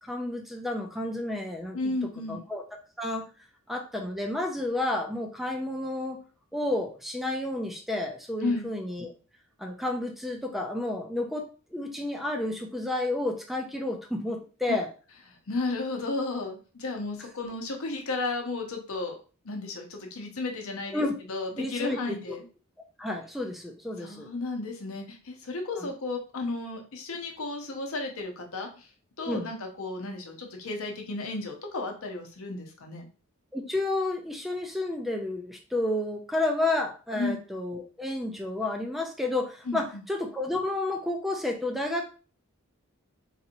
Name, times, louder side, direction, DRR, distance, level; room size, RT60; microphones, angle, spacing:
voice 1, 0.0-1.8 2.3-2.6 3.0-3.2 3.7-6.2 6.5-9.1 9.6-11.4 11.7-14.9 20.9-21.1 21.6-22.0 22.3-22.4 23.0-24.3 25.8-25.9 29.3-29.5 33.5-42.1, left 2 dB, ahead, 2 dB, 0.4 m, -31 dB
voice 2, 1.7-2.4 8.4-8.7 14.7-14.8 15.5-19.2 19.4-22.4 24.0-28.9 29.2-33.1 37.1-37.4 39.7-40.0, left 3 dB, 65° left, 3 dB, 0.8 m, -33 dB
4.1 x 2.8 x 2.6 m, 0.36 s
head